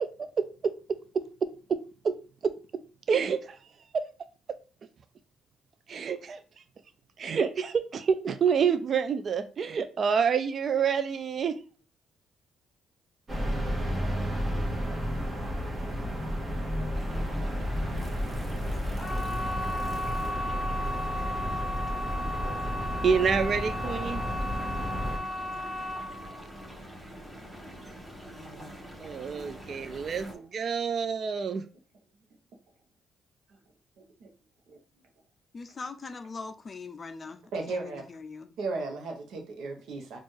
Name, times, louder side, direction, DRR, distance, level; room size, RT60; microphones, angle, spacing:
voice 1, 0.0-1.8 2.0-2.2 2.4-2.8 3.1-3.6 3.9-4.0 5.9-6.4 7.2-11.6 23.0-24.2 29.0-31.6, right 6 dB, 50° right, 0.3 m, -28 dB
sound 1, 13.3-25.2, equal, 30° right, 1.3 m, -32 dB
sound 2, 16.9-30.3, right 1 dB, 15° right, 1.2 m, -45 dB
sound 3, 18.9-29.8 30.0-30.6 31.0-31.1, left 1 dB, 10° left, 1.7 m, -36 dB
voice 2, 35.5-37.4 37.7-38.5, left 4 dB, 35° left, 0.4 m, -41 dB
voice 3, 37.5-38.0 38.6-40.2, right 3 dB, 80° right, 0.8 m, -35 dB
4.3 x 2.4 x 3.2 m
cardioid pair, 90°, 0 cm